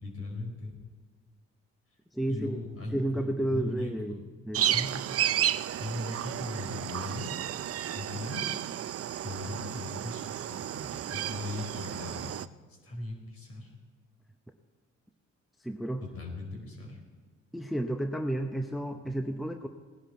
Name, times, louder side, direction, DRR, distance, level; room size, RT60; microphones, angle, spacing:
voice 1, 0.0-0.8 2.3-4.2 4.6-5.0 5.8-7.3 7.8-8.5 9.2-12.4 12.8-13.7 16.0-17.0, left 2 dB, 50° left, 1 dB, 4.4 m, -39 dB
voice 2, 2.1-2.6 2.9-4.2 4.5-4.8 15.6-16.0 17.5-19.7, right 1 dB, ahead, 5 dB, 0.8 m, -31 dB
sound 1, 4.5-12.5, right 11 dB, 50° right, 0.5 m, -32 dB
18.5 x 10.5 x 4.4 m, 1.5 s
cardioid pair, 90°, 30 cm